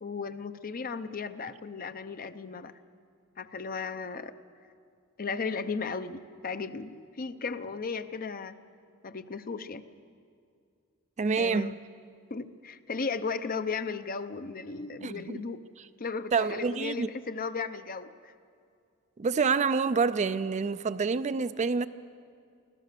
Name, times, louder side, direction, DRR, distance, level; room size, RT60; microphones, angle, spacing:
voice 1, 0.0-2.7 3.4-4.3 5.2-8.6 9.0-9.8 11.4-11.7 12.3-15.6 16.0-18.3, left 4 dB, 40° left, 11 dB, 0.7 m, -35 dB
voice 2, 11.2-11.7 15.0-15.4 16.3-17.1 19.2-21.9, right 5 dB, 35° right, 13 dB, 0.4 m, -27 dB
24.5 x 16.0 x 6.7 m, 2.4 s
head